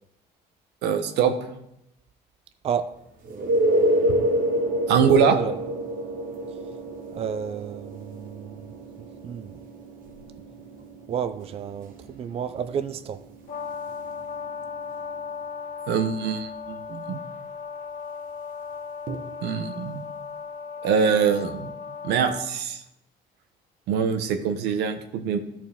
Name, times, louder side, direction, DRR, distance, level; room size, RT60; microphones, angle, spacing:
voice 1, 0.8-1.3 4.9-5.4 15.9-17.2 19.4-20.0 20.8-21.7 22.0-22.8 23.9-25.4, right 6 dB, 85° right, 0.9 m, -23 dB
voice 2, 2.6-2.9 5.3-5.6 7.1-8.8 9.2-9.6 11.1-13.2, right 7 dB, 35° right, 0.4 m, -31 dB
sound 1, 3.2-14.8 19.1-19.2, right 1 dB, 55° right, 1.2 m, -28 dB
Brass instrument, 13.5-22.5, left 6 dB, 55° left, 1.4 m, -36 dB
13.0 x 4.6 x 3.6 m
cardioid pair, 110°, 17 cm